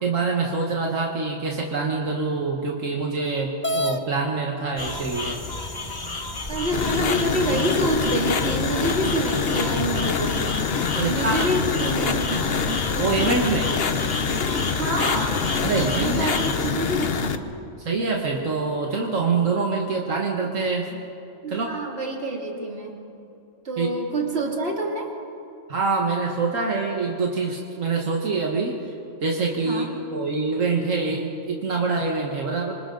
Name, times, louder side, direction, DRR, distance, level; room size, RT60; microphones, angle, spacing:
voice 1, 0.0-5.4 11.0-11.4 11.9-12.0 13.0-13.7 15.6-16.3 17.8-21.0 21.5-21.7 23.8-23.9 25.7-28.8 29.2-29.8 30.1-32.7, right 4 dB, 80° right, -1 dB, 2.0 m, -25 dB
sound 1, 3.6-4.0 5.0-5.1 5.7-5.8 6.4-7.1, left 1 dB, 10° left, 0.6 m, -27 dB
sound 2, 4.8-16.7, left 2 dB, 35° left, 1.4 m, -32 dB
voice 2, 6.5-10.6 11.0-12.9 14.7-15.4 15.7-17.5 21.4-23.0 23.6-25.1 29.6-29.9, right 1 dB, 55° right, 0 dB, 2.9 m, -27 dB
sound 3, 6.7-17.4, left 5 dB, 55° left, 1.0 m, -25 dB
26.5 x 26.0 x 3.9 m, 2.7 s
omnidirectional pair, 1.3 m